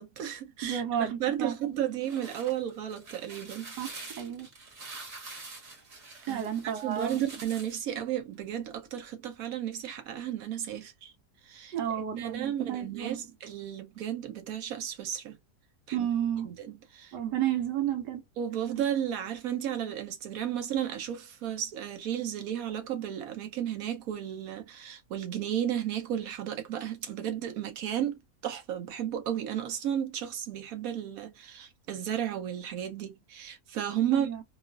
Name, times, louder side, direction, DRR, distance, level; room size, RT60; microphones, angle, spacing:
voice 1, 0.0-3.7 6.3-11.1 11.4-15.4 15.9-16.1 16.5-17.2 18.4-34.3, right 10 dB, 65° right, 1.0 m, -33 dB
voice 2, 0.6-1.8 3.8-4.5 6.3-7.3 11.7-13.2 15.9-16.5 17.1-18.2 34.1-34.4, right 10 dB, 85° right, 1.3 m, -32 dB
sound 1, 1.8-7.9, right 3 dB, 45° right, 1.4 m, -46 dB
3.0 x 2.4 x 2.3 m
omnidirectional pair, 1.8 m